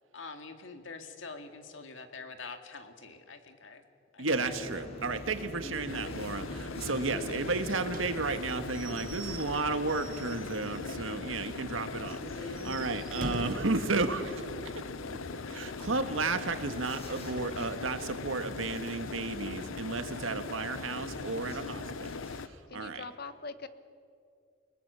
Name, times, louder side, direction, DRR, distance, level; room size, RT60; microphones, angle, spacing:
voice 1, 0.1-3.8 4.1-4.8 10.8-10.9, left 4 dB, 70° left, 6 dB, 2.1 m, -46 dB
voice 2, 4.2-14.5 15.5-22.1 22.7-23.0, right 3 dB, 90° right, 8 dB, 1.6 m, -33 dB
sound 1, 4.3-22.4, left 1 dB, 30° left, 5.9 m, -45 dB
sound 2, 5.9-22.5, left 4 dB, 90° left, 0.7 m, -41 dB
Slam / Squeak / Wood, 7.9-11.1 11.5-11.6 11.9-12.0 12.4-13.8, right 3 dB, 45° right, 1.4 m, -43 dB
voice 3, 22.7-23.7, left 4 dB, 50° left, 11 dB, 1.2 m, -42 dB
30.0 x 18.5 x 6.9 m, 2.4 s
head